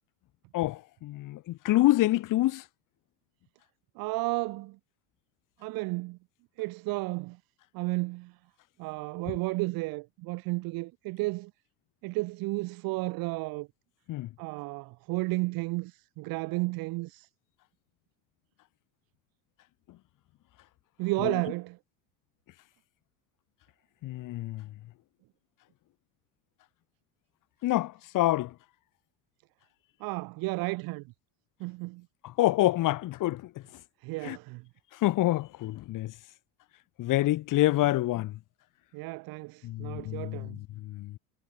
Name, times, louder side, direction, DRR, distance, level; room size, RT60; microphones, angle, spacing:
voice 1, 0.5-2.6 14.1-14.3 21.2-21.4 24.0-24.7 27.6-28.5 32.2-33.5 34.2-34.4 35.0-36.1 37.0-38.4 39.6-41.2, left 16 dB, 55° left, 3.7 m, -27 dB
voice 2, 3.9-4.8 5.6-6.2 6.6-7.4 7.7-8.3 8.8-11.5 12.0-13.7 14.4-17.3 21.0-21.8 30.0-31.0 31.6-32.0 34.0-34.6 38.9-40.6, right 23 dB, 70° right, 5.0 m, -33 dB
supercardioid pair, 105°, 37 cm